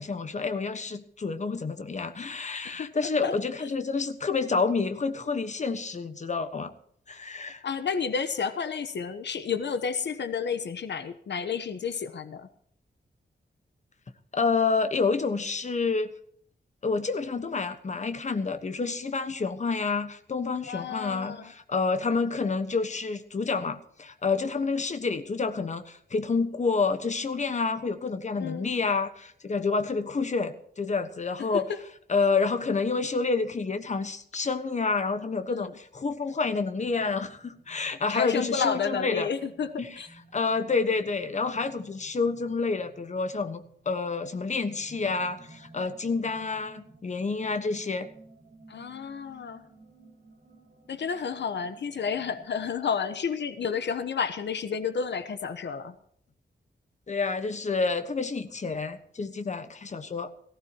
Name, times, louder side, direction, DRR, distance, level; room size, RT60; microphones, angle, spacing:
voice 1, 0.0-6.7 7.1-7.6 14.3-16.1 16.8-31.7 32.1-39.3 39.8-40.0 40.3-48.1 57.1-60.3, left 4 dB, 40° left, 9 dB, 1.3 m, -29 dB
voice 2, 7.6-12.5 20.7-21.5 28.4-28.7 35.5-35.7 38.1-40.1 48.7-49.6 50.9-56.0, left 6 dB, 75° left, 10 dB, 1.1 m, -31 dB
sound 1, 36.7-52.4, right 2 dB, 60° right, 4.6 m, -55 dB
18.0 x 15.5 x 3.0 m, 0.65 s
wide cardioid pair, 160°, 18 cm